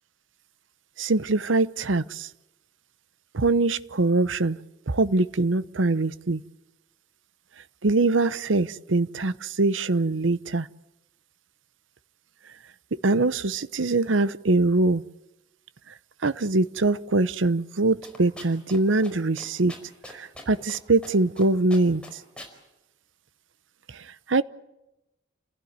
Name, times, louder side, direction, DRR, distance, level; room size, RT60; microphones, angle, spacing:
voice 1, 1.0-2.3 3.3-4.6 4.9-6.4 7.8-10.7 13.0-15.0 16.2-19.7 20.1-22.2 23.9-24.4, right 2 dB, 85° right, 0.9 m, -23 dB
sound 1, 18.0-18.8 19.0-19.1 19.4-20.8 21.0-21.4 21.7-22.5, left 1 dB, 5° left, 4.8 m, -42 dB
30.0 x 16.0 x 9.5 m
head